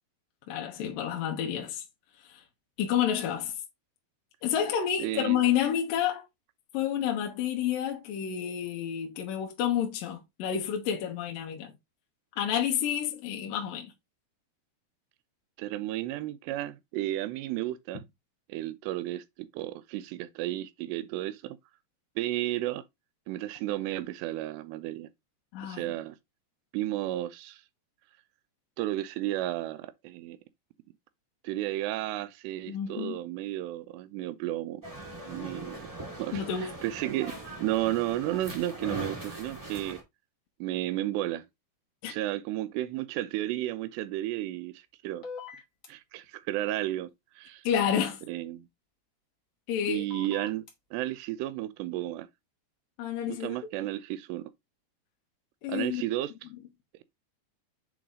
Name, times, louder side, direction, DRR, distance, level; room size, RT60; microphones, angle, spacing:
voice 1, 0.5-1.8 2.2-2.4 2.8-3.5 4.4-6.2 6.7-11.7 12.4-13.9 25.5-25.9 32.7-33.2 36.3-36.7 42.0-42.1 47.6-48.2 49.7-50.1 53.0-53.6 55.6-56.0, left 9 dB, 70° left, 2.5 m, -29 dB
voice 2, 5.0-5.4 15.6-18.0 18.5-21.6 22.2-22.8 23.3-25.1 25.6-26.2 26.7-27.6 28.8-30.4 31.4-34.8 35.3-35.9 36.2-40.0 40.6-41.4 42.0-45.2 45.9-47.7 48.3-48.7 49.9-50.7 50.9-52.3 53.3-54.5 55.7-56.3, right 15 dB, 85° right, 2.8 m, -33 dB
sound 1, 34.8-40.0, right 2 dB, 10° right, 0.8 m, -40 dB
sound 2, 45.2-45.9 48.0-48.1 50.1-50.7, left 6 dB, 35° left, 1.3 m, -42 dB
7.8 x 3.8 x 3.7 m
omnidirectional pair, 4.8 m